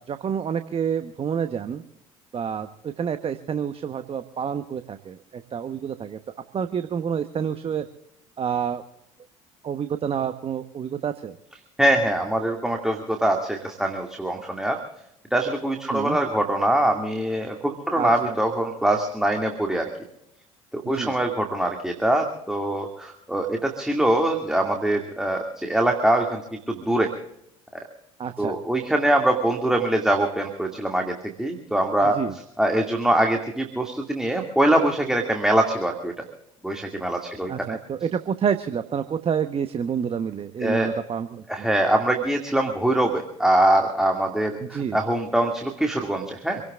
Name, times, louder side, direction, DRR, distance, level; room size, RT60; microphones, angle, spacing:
voice 1, 0.0-1.8 2.3-6.2 6.5-7.8 8.4-8.8 9.6-11.3 15.9-16.2 17.9-18.3 20.9-21.1 28.2-28.5 32.0-32.3 37.5-41.7 44.6-45.0, right 7 dB, 35° right, 9 dB, 1.1 m, -28 dB
voice 2, 11.8-14.8 15.3-19.9 20.7-26.4 26.7-27.1 28.4-36.1 36.6-37.8 40.6-40.9 41.5-46.6, right 1 dB, 5° right, 2 dB, 2.4 m, -23 dB
27.5 x 18.0 x 2.5 m, 0.80 s
hypercardioid pair, 65°, 17 cm